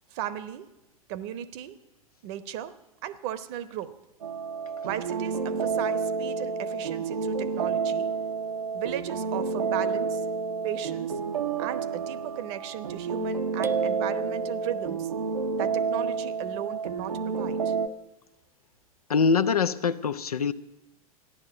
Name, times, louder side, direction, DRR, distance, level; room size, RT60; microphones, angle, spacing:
voice 1, 0.1-0.7 1.1-1.8 2.2-2.8 3.0-4.0 4.8-8.1 8.7-10.2 10.6-11.2 11.6-15.1 15.5-17.7, right 11 dB, 45° right, 15 dB, 0.9 m, -36 dB
sound 1, 4.2-17.9, right 5 dB, 80° right, 0.9 m, -30 dB
sound 2, 13.6-15.2, right 6 dB, 15° right, 0.5 m, -35 dB
voice 2, 19.1-20.5, left 5 dB, 80° left, 12 dB, 0.6 m, -23 dB
14.0 x 11.0 x 7.7 m, 0.96 s
figure-of-eight pair, 95°, 19 cm